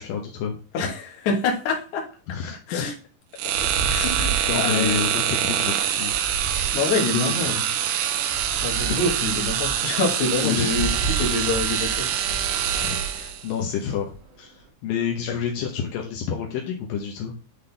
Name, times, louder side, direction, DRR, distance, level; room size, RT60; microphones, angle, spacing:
voice 1, 0.0-0.6 2.3-2.9 4.5-6.1 7.1-7.7 8.5-9.0 10.4-10.7 12.8-17.3, left 7 dB, 80° left, 1 dB, 2.0 m, -29 dB
voice 2, 0.7-2.1 2.7-2.9 3.9-5.0 6.7-7.6 8.6-12.1, left 4 dB, 60° left, 1 dB, 2.1 m, -26 dB
sound 1, 3.4-13.5, right 10 dB, 90° right, 3.2 m, -25 dB
sound 2, 3.5-7.5 8.2-14.6, right 5 dB, 55° right, 2.6 m, -33 dB
10.0 x 3.8 x 3.3 m, 0.37 s
omnidirectional pair, 5.3 m